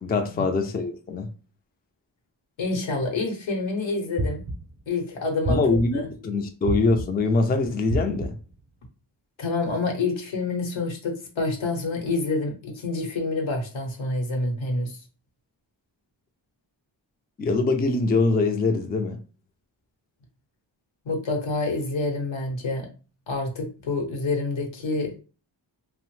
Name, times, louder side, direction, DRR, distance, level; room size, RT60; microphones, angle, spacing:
voice 1, 0.0-1.3 5.5-8.3 17.4-19.2, left 3 dB, 20° left, 0.3 m, -23 dB
voice 2, 2.6-4.4 4.9-5.6 5.9-6.1 9.4-15.0 21.0-22.9 23.3-25.1, left 3 dB, 80° left, 0.9 m, -27 dB
sound 1, 4.2-4.8 5.4-6.1 6.7-7.3 7.9-8.5, right 1 dB, 35° right, 0.5 m, -29 dB
2.8 x 2.0 x 3.0 m
wide cardioid pair, 70°, 46 cm